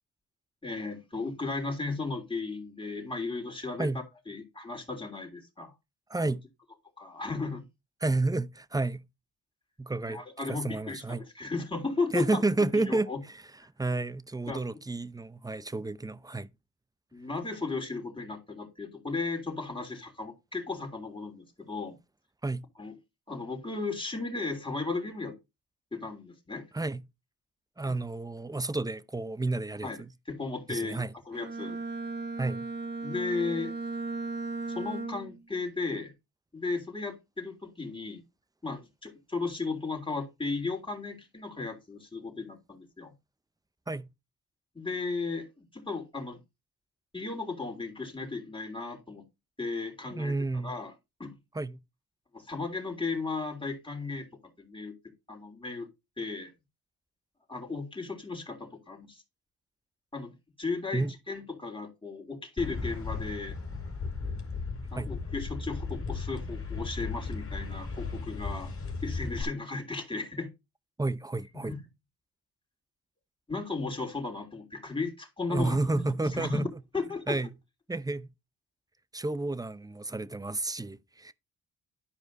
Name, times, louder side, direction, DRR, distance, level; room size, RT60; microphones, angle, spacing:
voice 1, 0.6-5.7 6.2-6.3 7.0-7.6 10.1-13.2 14.5-14.6 17.1-22.0 22.8-22.9 23.3-25.3 25.9-26.6 29.8-31.8 33.0-33.7 34.7-36.1 36.5-38.2 38.6-43.1 44.7-46.4 47.1-49.2 49.6-50.9 51.2-51.4 52.3-54.3 54.6-54.9 55.3-55.9 56.2-56.5 57.5-59.2 60.1-60.3 60.6-63.6 64.9-68.7 69.0-70.5 71.6-71.8 73.5-76.7 76.9-77.3, left 3 dB, 15° left, 3.4 m, -35 dB
voice 2, 6.1-6.4 8.0-9.0 9.8-10.2 10.5-11.2 12.1-13.1 13.8-16.5 22.4-22.7 26.7-27.0 27.8-30.1 30.7-31.1 32.4-32.7 43.9-44.1 50.1-50.8 51.5-51.8 60.9-61.1 64.9-65.1 71.0-71.8 75.5-76.7 77.3-77.5 77.9-78.3 79.1-81.3, right 2 dB, 10° right, 0.6 m, -31 dB
Bowed string instrument, 31.3-35.4, right 3 dB, 25° right, 2.1 m, -36 dB
sound 1, 62.6-69.4, left 4 dB, 35° left, 2.7 m, -36 dB
11.5 x 4.9 x 4.0 m
supercardioid pair, 60°, 38 cm